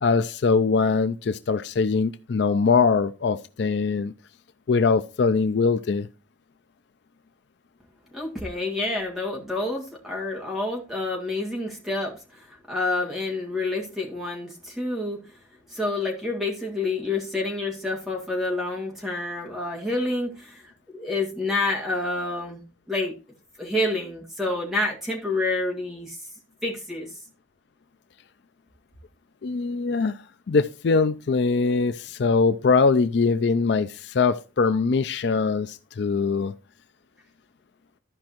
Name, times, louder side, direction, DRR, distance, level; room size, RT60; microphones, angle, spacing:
voice 1, 0.0-4.1 4.7-6.1 29.4-30.2 30.5-36.5, left 4 dB, 60° left, 0.4 m, -22 dB
voice 2, 8.1-15.2 15.7-23.1 23.6-26.2 26.6-27.1, left 2 dB, ahead, 2.0 m, -28 dB
14.0 x 5.2 x 2.9 m
head